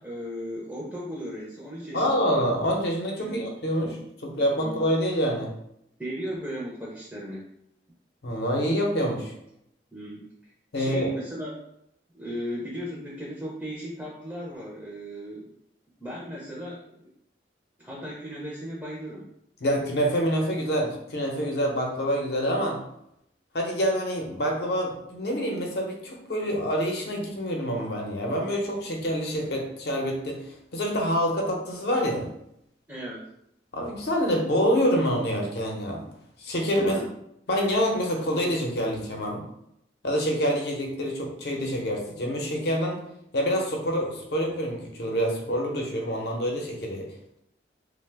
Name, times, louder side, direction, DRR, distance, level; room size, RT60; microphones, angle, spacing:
voice 1, 0.0-2.3 3.2-3.5 4.6-4.8 6.0-7.5 9.9-11.6 12.1-15.5 16.0-17.0 17.8-19.3 32.9-33.3 36.8-37.1, equal, 5° right, -5 dB, 0.4 m, -36 dB
voice 2, 1.9-5.5 8.2-9.3 10.7-11.1 19.6-22.8 23.5-30.4 30.7-32.3 33.7-36.1 36.4-37.0 37.5-39.4 40.0-43.0 43.3-47.1, equal, 60° left, 1 dB, 0.6 m, -26 dB
2.8 x 2.1 x 3.3 m, 0.77 s
head